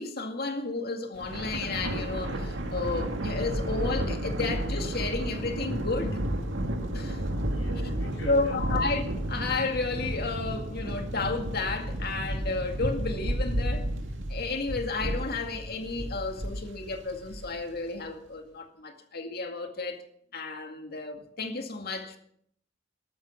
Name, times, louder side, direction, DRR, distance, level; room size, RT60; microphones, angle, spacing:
voice 1, 0.0-6.2 6.9-7.2 8.2-13.9 14.3-20.0 20.3-22.2, left 3 dB, 55° left, 2.1 m, -32 dB
Thunder, 1.1-17.8, right 1 dB, 75° right, 2.3 m, -32 dB
voice 2, 7.5-8.8, equal, 85° left, 7.4 m, -44 dB
13.0 x 13.0 x 6.0 m
head